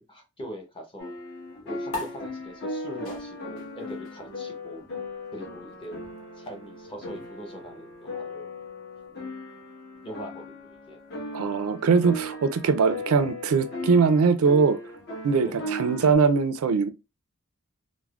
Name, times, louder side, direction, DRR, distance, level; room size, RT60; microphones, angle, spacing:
voice 1, 0.1-1.1 1.6-4.8 5.3-6.0 6.3-8.5 10.0-11.0 12.9-13.2 15.4-15.7, equal, 25° left, 0.7 m, -41 dB
sound 1, 1.0-16.1, left 1 dB, 50° left, 1.0 m, -38 dB
sound 2, 1.9-8.7, left 3 dB, 90° left, 1.0 m, -43 dB
voice 2, 11.3-14.8 15.2-16.9, right 5 dB, 75° right, 0.4 m, -21 dB
3.4 x 2.1 x 2.3 m
head